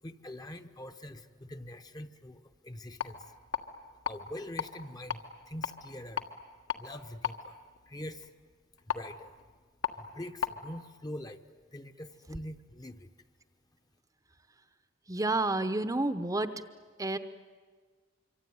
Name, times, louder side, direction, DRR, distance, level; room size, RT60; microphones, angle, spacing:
voice 1, 0.0-3.4 4.0-6.2 6.8-7.6 7.9-8.3 8.8-9.4 10.0-13.1, left 1 dB, 20° left, 8 dB, 0.9 m, -44 dB
sound 1, 2.8-10.6, left 7 dB, 65° left, 1.6 m, -39 dB
voice 2, 15.1-16.6 17.0-17.2, right 2 dB, 15° right, 10 dB, 0.8 m, -30 dB
25.0 x 25.0 x 9.5 m, 1.5 s
head